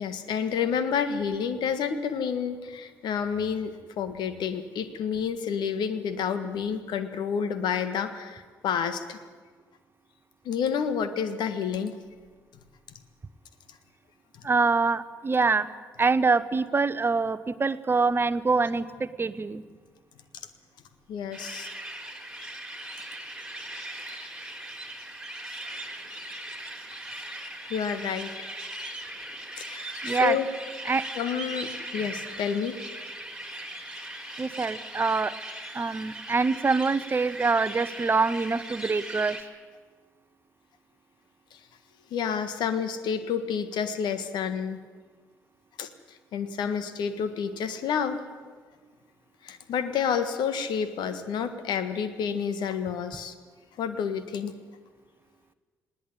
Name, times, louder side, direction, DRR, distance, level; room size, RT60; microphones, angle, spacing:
voice 1, 0.0-9.2 10.4-12.0 14.3-14.5 21.1-21.7 24.1-24.3 26.3-26.4 27.2-28.5 29.6-30.5 31.1-32.8 41.5-41.6 42.1-44.8 45.8-48.2 49.4-53.3 53.8-54.5, left 7 dB, 55° left, 11 dB, 1.6 m, -29 dB
voice 2, 14.4-15.7 16.0-19.6 30.0-30.4 30.8-31.1 34.4-35.3 35.7-39.4, right 4 dB, 25° right, 14 dB, 1.0 m, -25 dB
sound 1, 21.3-39.4, right 1 dB, 5° right, 3.8 m, -39 dB
20.0 x 17.0 x 9.9 m, 1.5 s
figure-of-eight pair, 45°, 9 cm